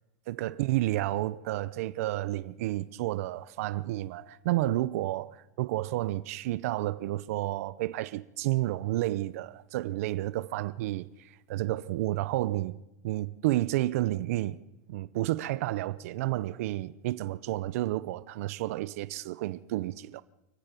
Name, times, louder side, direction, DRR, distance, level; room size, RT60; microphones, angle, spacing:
voice 1, 0.3-5.3 5.6-12.8 13.0-14.6 14.9-20.2, right 16 dB, 60° right, 0.8 m, -31 dB
24.5 x 15.0 x 9.1 m
supercardioid pair, 170°, 9 cm